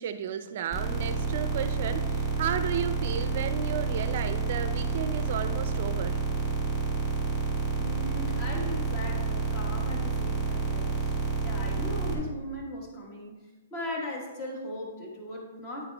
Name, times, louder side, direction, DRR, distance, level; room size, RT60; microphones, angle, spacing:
voice 1, 0.0-6.2, right 8 dB, 45° right, 9 dB, 0.5 m, -33 dB
sound 1, 0.7-12.1, right 4 dB, 5° left, 1.2 m, -29 dB
voice 2, 7.8-11.1 11.4-13.4 13.7-15.9, left 1 dB, 25° left, -1 dB, 1.4 m, -38 dB
9.5 x 8.0 x 2.3 m, 1.2 s
hypercardioid pair, 165°, 0 cm